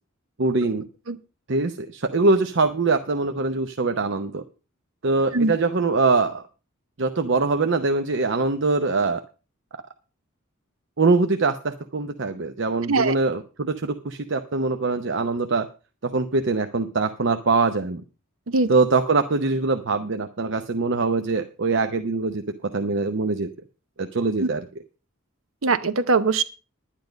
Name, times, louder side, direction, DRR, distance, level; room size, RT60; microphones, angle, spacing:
voice 1, 0.4-0.9 1.5-4.4 5.0-6.4 7.0-9.2 11.0-15.7 16.0-18.0 18.7-23.5 24.0-24.6, right 3 dB, 60° right, 8 dB, 0.8 m, -23 dB
voice 2, 25.6-26.4, right 3 dB, 85° right, 13 dB, 1.0 m, -21 dB
10.5 x 10.5 x 5.1 m, 0.34 s
head